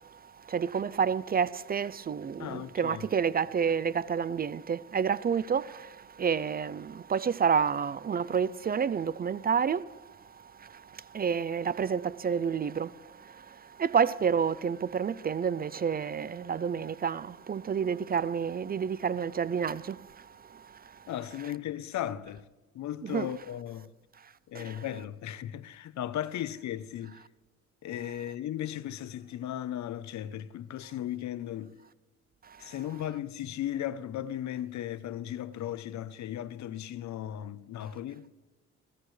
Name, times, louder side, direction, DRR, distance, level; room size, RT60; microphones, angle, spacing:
voice 1, 0.5-10.0 10.6-20.1 20.5-20.6 23.0-23.3 24.5-24.8 32.6-32.7, right 7 dB, 30° right, 0.4 m, -29 dB
voice 2, 2.4-3.0 21.1-22.4 22.7-23.9 24.5-27.2 27.8-31.8 32.6-38.3, left 11 dB, 70° left, 0.8 m, -36 dB
20.0 x 16.5 x 3.3 m
cardioid pair, 90°, 30 cm